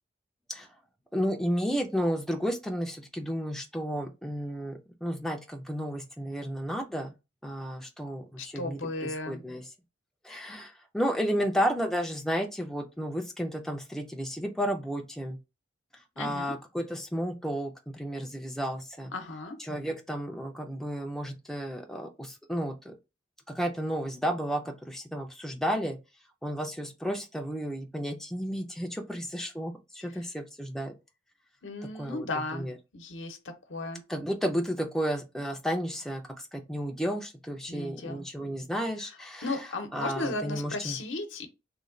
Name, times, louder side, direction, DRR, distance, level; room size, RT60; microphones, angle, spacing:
voice 1, 1.1-7.1 7.4-9.6 10.2-15.4 16.2-19.1 19.7-22.9 23.5-26.0 26.4-30.9 32.0-32.3 32.5-32.7 34.1-39.5 39.9-41.0, equal, ahead, 0.4 m, -32 dB
voice 2, 8.4-9.4 16.2-16.5 19.1-19.6 30.0-30.2 31.6-32.7 32.9-33.4 33.7-34.0 37.7-38.2 39.0-39.2 39.4-41.5, left 2 dB, 75° left, 0.8 m, -35 dB
3.1 x 2.3 x 3.7 m
head